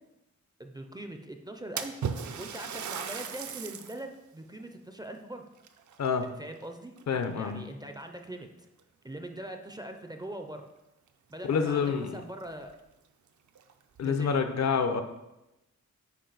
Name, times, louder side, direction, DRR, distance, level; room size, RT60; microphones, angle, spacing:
voice 1, 0.6-5.4 6.4-7.0 7.4-8.5 9.0-10.6 11.3-12.7 14.0-14.7, right 1 dB, 15° right, 5 dB, 0.4 m, -42 dB
Splash splatter, 1.8-4.1 4.6-4.7 5.6-6.6 7.0-7.4 8.2-8.3 8.8-8.9 11.1-11.2 11.5-11.6 12.1-12.2 12.6-12.7 13.5-14.1, right 7 dB, 70° right, 0.6 m, -37 dB
voice 2, 7.1-7.6 11.5-12.2 14.0-15.0, left 6 dB, 60° left, 9 dB, 0.6 m, -27 dB
8.5 x 4.9 x 3.9 m, 0.96 s
wide cardioid pair, 175°, 30 cm